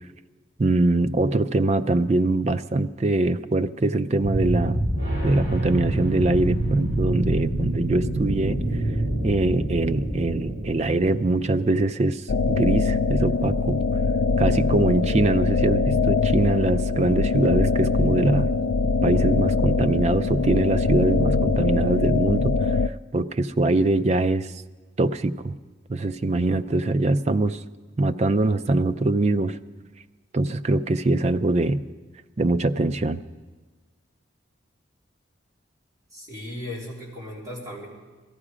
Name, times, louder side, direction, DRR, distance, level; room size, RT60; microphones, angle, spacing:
voice 1, 0.6-4.9 5.2-8.6 9.2-13.8 14.4-18.5 19.0-24.5 25.0-25.5 25.9-27.6 28.0-29.6 30.3-31.8 32.4-33.2, right 2 dB, 35° right, 11 dB, 0.4 m, -23 dB
sound 1, 4.2-12.0, right 1 dB, 70° right, 6.4 m, -26 dB
sound 2, 12.3-22.9, left 4 dB, 85° left, 0.4 m, -22 dB
voice 2, 36.1-37.9, left 1 dB, 20° right, -5 dB, 3.4 m, -36 dB
17.5 x 13.5 x 5.0 m, 1.3 s
head